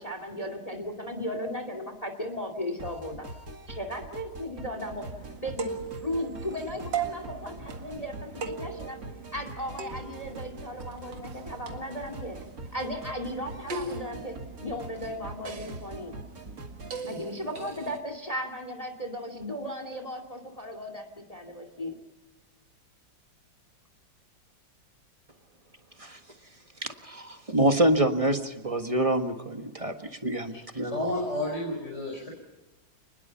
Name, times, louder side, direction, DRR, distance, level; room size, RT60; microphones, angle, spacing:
voice 1, 0.0-3.3 3.7-5.1 5.4-5.7 6.0-9.0 9.3-12.4 12.7-16.2 17.0-22.0, equal, 20° left, 7 dB, 2.4 m, -36 dB
sound 1, 2.8-17.0, right 2 dB, 50° right, 2.6 m, -43 dB
sound 2, 4.7-18.0, right 5 dB, 70° right, 2.6 m, -40 dB
voice 2, 27.0-31.1, right 1 dB, 20° right, 6 dB, 1.4 m, -26 dB
voice 3, 30.9-32.3, left 1 dB, 35° left, -1 dB, 5.4 m, -31 dB
29.5 x 21.0 x 5.8 m, 1.1 s
omnidirectional pair, 2.1 m